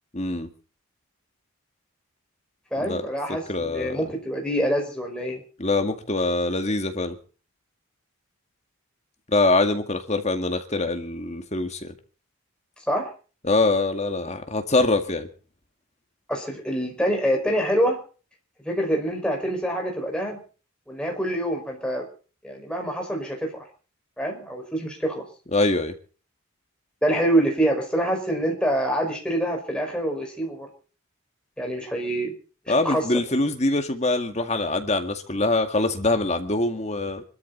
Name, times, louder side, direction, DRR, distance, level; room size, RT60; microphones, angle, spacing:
voice 1, 0.1-0.5 2.8-3.1 3.5-4.0 5.6-7.2 9.3-11.9 13.4-15.3 25.5-25.9 32.7-37.2, left 2 dB, 30° left, 6 dB, 2.0 m, -24 dB
voice 2, 2.7-5.4 12.9-13.1 16.3-18.0 18.6-20.4 20.9-22.1 22.4-23.6 24.2-25.2 27.0-30.7 31.6-32.3 32.7-33.0, right 1 dB, 5° left, 1 dB, 5.2 m, -25 dB
25.0 x 13.5 x 4.1 m, 0.39 s
head